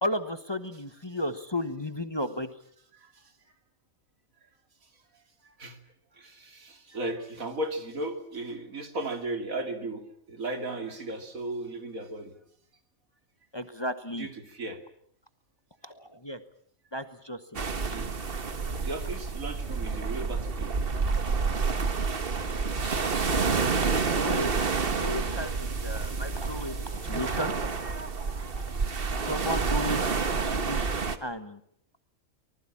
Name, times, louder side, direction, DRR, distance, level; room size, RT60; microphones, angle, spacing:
voice 1, 0.0-2.5 13.5-14.3 15.8-16.4 16.9-17.4 23.5-24.7 25.0-27.7 28.2-28.3 29.3-30.4 30.7-30.9 31.2-31.6, left 1 dB, 20° left, 10 dB, 1.2 m, -34 dB
voice 2, 2.9-3.3 5.1-5.8 6.1-12.3 14.2-14.8 17.9-18.1 18.8-20.7, right 2 dB, 80° right, 6 dB, 3.2 m, -36 dB
sound 1, 17.6-31.2, right 4 dB, 45° right, 1.5 m, -29 dB
25.0 x 19.5 x 8.7 m, 0.66 s
omnidirectional pair, 1.4 m